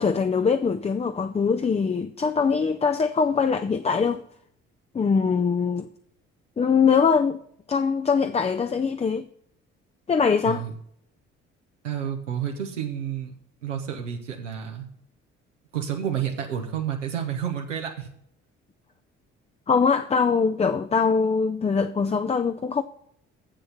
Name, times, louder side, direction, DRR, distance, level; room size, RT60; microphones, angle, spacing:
voice 1, 0.0-4.2 4.9-5.9 6.6-7.4 7.7-9.3 10.1-10.6 19.7-22.8, left 5 dB, 20° left, 0.5 m, -22 dB
voice 2, 11.8-13.4 13.6-14.9 15.7-18.1, right 9 dB, 85° right, 1.0 m, -30 dB
7.7 x 6.8 x 7.1 m
figure-of-eight pair, 45°, 36 cm